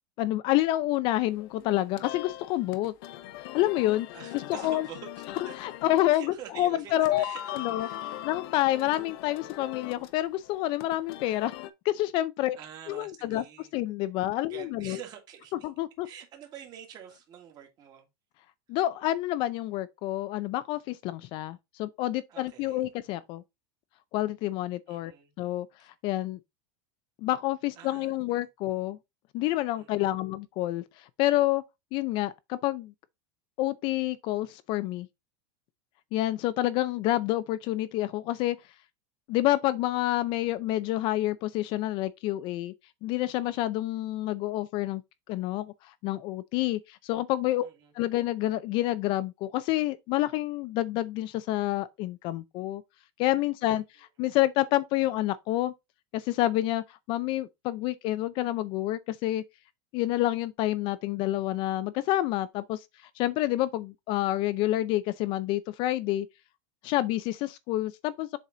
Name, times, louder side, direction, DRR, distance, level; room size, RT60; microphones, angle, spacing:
voice 1, 0.2-2.9 3.5-4.1 4.3-4.9 5.6-7.2 7.5-7.9 8.2-11.5 11.8-12.6 12.9-13.4 13.7-15.0 15.6-16.1 18.7-23.4 24.1-25.1 25.4-26.4 27.2-29.0 29.3-31.6 31.9-32.9 33.6-35.1 36.1-38.6 39.3-42.7 43.0-45.0 45.3-47.7 48.0-52.8 53.2-55.7 56.1-59.4 59.9-62.8 63.2-66.3 66.8-68.4, left 15 dB, 40° left, 0.5 m, -28 dB
sound 1, 1.3-11.7, left 14 dB, 70° left, 0.9 m, -41 dB
voice 2, 4.1-5.1 5.4-5.5 6.1-8.3 12.5-13.7 14.5-15.7 16.0-18.1 22.3-22.8 24.9-25.3 25.8-25.9 27.8-28.5 29.8-30.1 47.6-47.9 53.6-53.8, right 9 dB, 30° right, 1.9 m, -47 dB
7.3 x 4.1 x 3.9 m
supercardioid pair, 160°, 13 cm